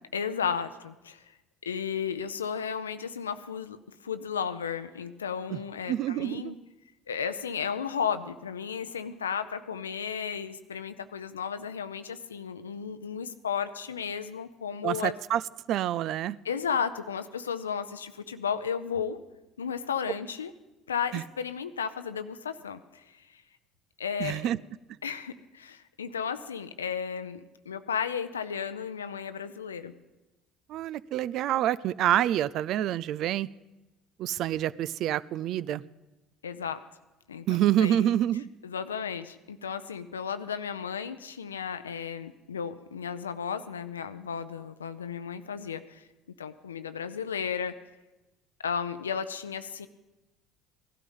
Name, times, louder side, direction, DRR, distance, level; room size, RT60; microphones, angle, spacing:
voice 1, 0.1-1.2 1.6-6.6 7.1-15.1 16.4-19.2 19.6-20.5 20.9-23.4 24.0-24.5 25.0-30.0 36.4-36.8 37.3-37.5 37.8-38.1 38.6-46.0 46.4-47.8 48.6-49.9, left 7 dB, 90° left, 11 dB, 0.5 m, -34 dB
voice 2, 5.9-6.5 14.8-15.4 15.7-16.4 21.1-21.2 24.2-24.6 30.7-33.5 34.2-35.8 37.5-38.5, right 12 dB, 60° right, 21 dB, 0.4 m, -27 dB
17.5 x 12.5 x 5.4 m, 1.1 s
hypercardioid pair, 60°, 0 cm